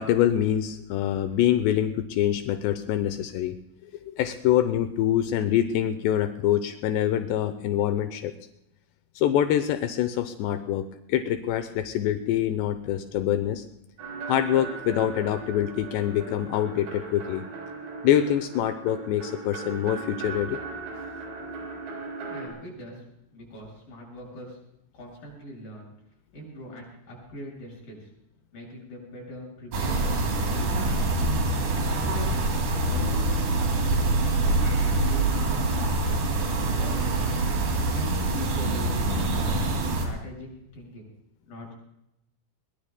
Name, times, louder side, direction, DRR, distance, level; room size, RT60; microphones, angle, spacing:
voice 1, 0.0-3.5 4.1-8.3 9.2-10.8 11.1-13.6 14.3-17.4 18.0-20.6, left 11 dB, 80° left, 9 dB, 2.9 m, -25 dB
sound 1, 14.0-22.5, right 4 dB, 70° right, 6.1 m, -38 dB
voice 2, 22.3-23.0 23.3-24.6 24.9-25.9 26.3-28.1 28.5-30.1 30.5-31.4 32.1-37.1 37.9-39.7 40.0-40.5 40.7-41.0 41.5-41.7, equal, 50° left, -2 dB, 9.0 m, -42 dB
sound 2, 29.7-40.1, right 2 dB, 50° right, 3.6 m, -25 dB
23.0 x 22.0 x 2.2 m, 0.81 s
omnidirectional pair, 5.1 m